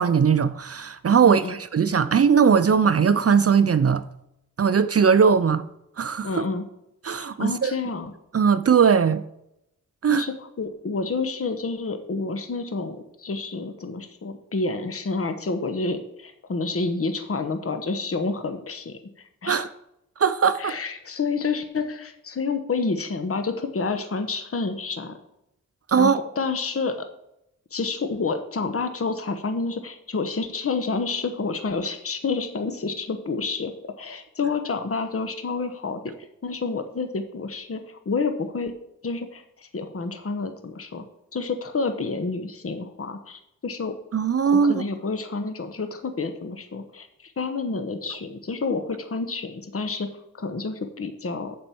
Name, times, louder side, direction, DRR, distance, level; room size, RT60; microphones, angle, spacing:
voice 1, 0.0-4.0 4.6-5.6 6.0-6.5 7.0-7.7 8.3-9.2 10.0-10.3 19.5-19.7 20.2-20.7 25.9-26.2 44.1-44.8, right 6 dB, 45° right, 0.5 m, -19 dB
voice 2, 1.2-1.6 6.2-6.6 7.2-8.1 10.1-19.0 19.4-19.7 20.6-25.2 26.0-27.1 27.7-36.1 36.4-38.7 39.0-41.0 41.3-44.0 44.6-50.1 50.3-51.6, left 4 dB, 45° left, 1.1 m, -29 dB
7.3 x 5.4 x 7.0 m
cardioid pair, 55°, 33 cm